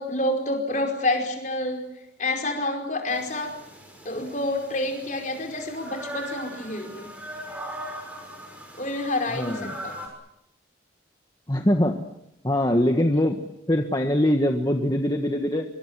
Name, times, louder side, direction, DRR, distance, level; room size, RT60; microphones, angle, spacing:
voice 1, 0.0-1.9 2.2-3.6 4.0-7.1 8.8-10.0, left 1 dB, 40° left, 3 dB, 5.1 m, -28 dB
sound 1, 3.1-10.1, right 1 dB, 5° right, 6.3 m, -40 dB
voice 2, 9.3-9.7 11.5-12.0 12.4-13.4 13.7-15.6, left 1 dB, 20° left, 4 dB, 1.5 m, -22 dB
26.5 x 24.0 x 7.6 m, 0.84 s
head